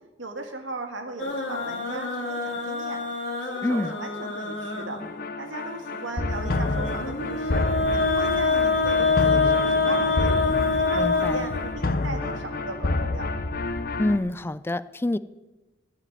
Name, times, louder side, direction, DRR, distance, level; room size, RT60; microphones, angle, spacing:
voice 1, 0.2-3.0 3.4-5.0 5.4-7.6 7.9-10.3 10.7-13.3, right 2 dB, 85° right, 4 dB, 1.9 m, -37 dB
sound 1, 1.2-5.2 6.3-12.1, left 4 dB, 65° left, 2.2 m, -25 dB
voice 2, 3.6-4.0 10.9-11.5 14.0-15.2, left 1 dB, 10° left, 16 dB, 0.3 m, -26 dB
sound 2, 5.0-14.2, left 2 dB, 50° left, 0.7 m, -29 dB
15.0 x 5.0 x 9.3 m, 1.1 s
head